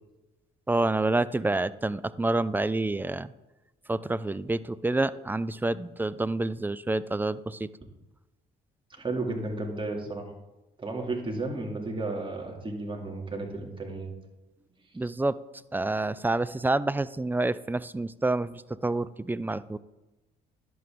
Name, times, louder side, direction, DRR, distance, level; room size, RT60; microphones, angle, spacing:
voice 1, 0.7-3.3 3.9-7.7 14.9-15.4 15.7-19.8, right 2 dB, 10° right, 17 dB, 0.4 m, -28 dB
voice 2, 8.9-10.3 10.8-14.1, right 2 dB, 25° right, 1 dB, 2.3 m, -33 dB
11.0 x 7.7 x 3.6 m, 1.0 s
hypercardioid pair, 60°, 20 cm